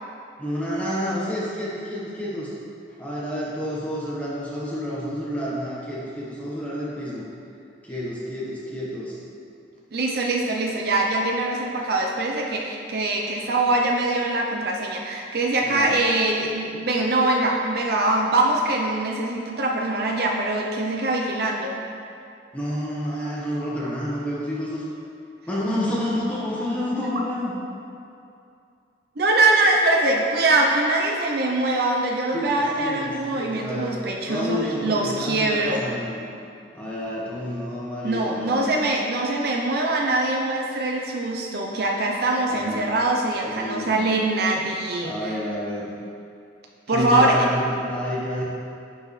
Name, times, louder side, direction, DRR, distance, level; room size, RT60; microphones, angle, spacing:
voice 1, 0.4-2.5 3.0-7.2 7.8-9.2 15.6-16.0 22.5-24.8 25.5-27.5 32.3-33.9 34.3-36.2 36.7-38.8 42.5-43.0 43.4-44.0 45.0-45.9 46.9-48.4, equal, 5° left, -7 dB, 1.3 m, -29 dB
voice 2, 9.9-21.8 29.2-35.8 38.0-45.4 46.9-47.4, right 2 dB, 55° right, 0 dB, 0.6 m, -23 dB
11.0 x 4.8 x 3.2 m, 2.5 s
head